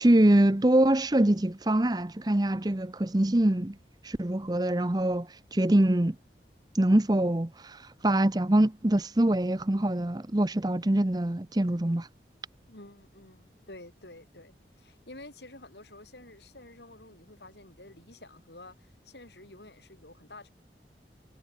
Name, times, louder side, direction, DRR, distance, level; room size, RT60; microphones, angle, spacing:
voice 1, 0.0-3.8 4.0-6.2 6.7-12.1, right 1 dB, 25° right, 0.8 m, -24 dB
voice 2, 12.7-20.5, left 2 dB, 75° left, 7.5 m, -50 dB
head